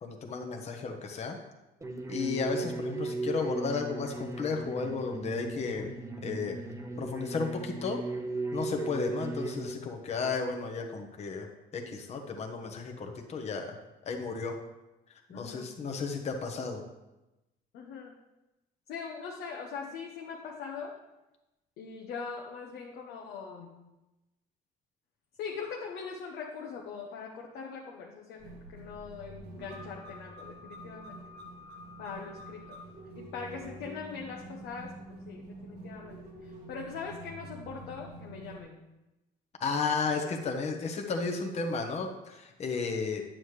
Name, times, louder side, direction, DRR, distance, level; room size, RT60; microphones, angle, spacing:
voice 1, 0.0-1.4 2.1-5.9 6.2-6.6 7.0-8.0 8.5-11.5 11.7-13.8 14.0-14.6 15.3-16.8 39.6-43.2, left 4 dB, 40° left, 3 dB, 1.0 m, -33 dB
sound 1, 1.8-9.7, right 3 dB, 20° right, 0.9 m, -37 dB
voice 2, 15.3-15.7 17.7-18.1 18.9-20.9 21.8-23.9 25.4-31.2 32.0-32.8 33.1-38.8, left 5 dB, 80° left, -1 dB, 1.0 m, -41 dB
sound 2, 28.4-38.6, right 1 dB, 80° right, 1.6 m, -47 dB
9.2 x 7.6 x 3.3 m, 0.99 s
cardioid pair, 110°, 17 cm